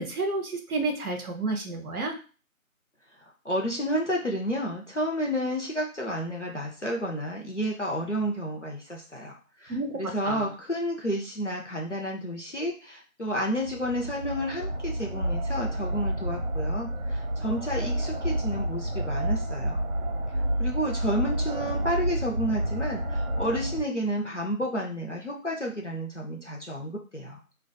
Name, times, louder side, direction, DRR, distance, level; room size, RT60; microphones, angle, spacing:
voice 1, 0.0-2.2 9.7-10.5, right 2 dB, 85° right, 3 dB, 0.7 m, -30 dB
voice 2, 3.2-19.8 20.6-27.4, equal, 55° left, -2 dB, 0.5 m, -31 dB
sound 1, 13.5-23.8, right 1 dB, 45° right, 1.0 m, -29 dB
2.5 x 2.2 x 2.2 m, 0.35 s
figure-of-eight pair, 180°, 43 cm